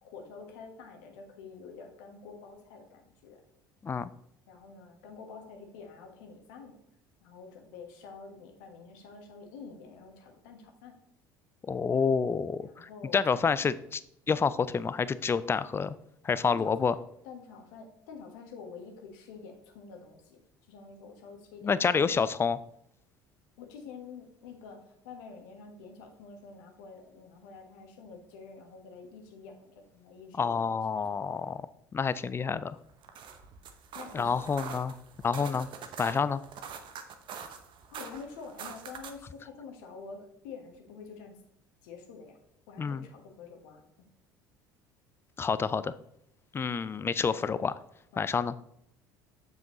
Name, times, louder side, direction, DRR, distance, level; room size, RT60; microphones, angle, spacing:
voice 1, 0.0-3.4 4.5-6.8 7.2-10.9 12.6-13.5 16.5-17.0 17.2-20.4 20.7-22.2 23.6-30.8 33.9-34.4 37.9-41.3 41.8-42.4 42.7-43.8 47.2-47.6 48.1-48.5, left 5 dB, 65° left, 3 dB, 1.4 m, -48 dB
voice 2, 11.7-14.0 14.3-15.9 16.2-16.9 21.6-22.6 30.4-31.6 31.9-32.8 34.1-34.9 35.2-35.7 36.0-36.4 42.8-43.0 45.4-45.9 46.5-47.7 48.2-48.5, left 5 dB, 20° left, 16 dB, 0.4 m, -28 dB
sound 1, 32.9-39.3, right 6 dB, 45° right, 0.9 m, -44 dB
7.4 x 7.1 x 3.0 m, 0.74 s
figure-of-eight pair, 60°, 11 cm